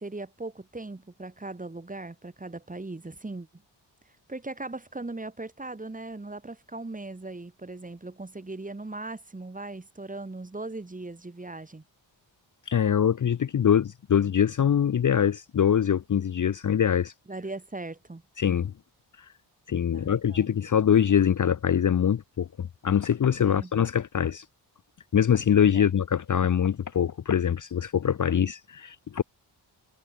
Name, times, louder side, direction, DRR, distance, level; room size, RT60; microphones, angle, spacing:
voice 1, 0.0-3.6 4.3-11.8 17.3-18.2 19.9-20.5 23.4-23.7 25.7-25.9, right 2 dB, 20° right, 2.0 m, -39 dB
voice 2, 12.7-17.1 18.4-18.7 19.7-24.4 25.1-29.2, left 8 dB, 45° left, 0.7 m, -23 dB
cardioid pair, 85°, 45 cm